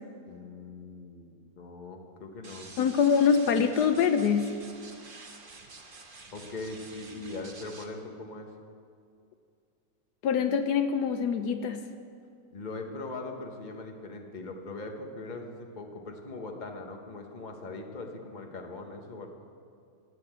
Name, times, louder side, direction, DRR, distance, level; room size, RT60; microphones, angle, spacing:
voice 1, 0.3-2.7 6.3-8.5 12.5-19.3, left 2 dB, 30° left, 3 dB, 1.2 m, -41 dB
sound 1, 2.4-7.9, right 3 dB, 35° right, 1.1 m, -49 dB
voice 2, 2.8-4.5 10.2-11.8, left 7 dB, 75° left, 8 dB, 1.2 m, -24 dB
12.5 x 9.5 x 8.1 m, 2.3 s
omnidirectional pair, 1.8 m